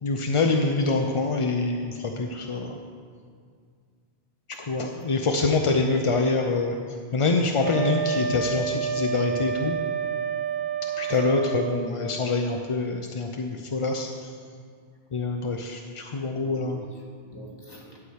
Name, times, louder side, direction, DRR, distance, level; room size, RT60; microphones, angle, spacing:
voice 1, 0.0-2.8 4.7-6.8 7.1-9.8 11.0-14.1 15.1-16.8, left 3 dB, 40° left, 3 dB, 0.5 m, -25 dB
voice 2, 4.5-5.0 10.9-11.4 15.4-15.6 16.4-18.0, equal, 20° left, -2 dB, 1.7 m, -47 dB
Wind instrument woodwind instrument, 7.6-11.8, right 6 dB, 20° right, 3.0 m, -29 dB
11.5 x 4.8 x 7.9 m, 2.1 s
omnidirectional pair, 1.1 m